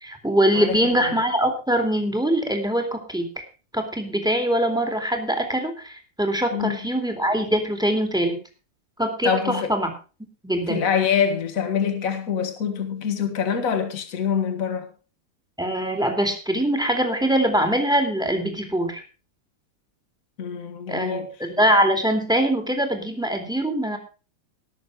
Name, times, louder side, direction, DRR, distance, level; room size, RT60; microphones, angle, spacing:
voice 1, 0.0-3.4 3.7-8.4 9.0-9.9 10.4-10.8 15.6-19.0 20.9-24.0, right 1 dB, ahead, 2.0 m, -23 dB
voice 2, 0.5-1.2 6.5-6.8 9.2-9.8 10.7-14.9 20.4-21.3, left 7 dB, 35° left, 1.7 m, -25 dB
19.5 x 6.7 x 4.8 m
omnidirectional pair, 3.4 m